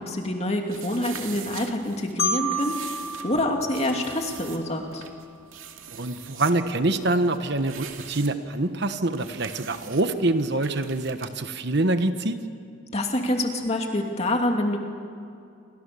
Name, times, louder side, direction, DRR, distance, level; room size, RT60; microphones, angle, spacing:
voice 1, 0.0-5.0 12.9-14.8, left 1 dB, 30° left, 3 dB, 2.7 m, -26 dB
sound 1, 0.7-11.3, right 9 dB, 75° right, 2.4 m, -43 dB
Marimba xylophone, 2.2-5.0, equal, 70° left, 2.9 m, -31 dB
voice 2, 5.9-12.4, right 2 dB, 55° right, 9 dB, 1.2 m, -25 dB
28.5 x 25.5 x 7.0 m, 2.5 s
head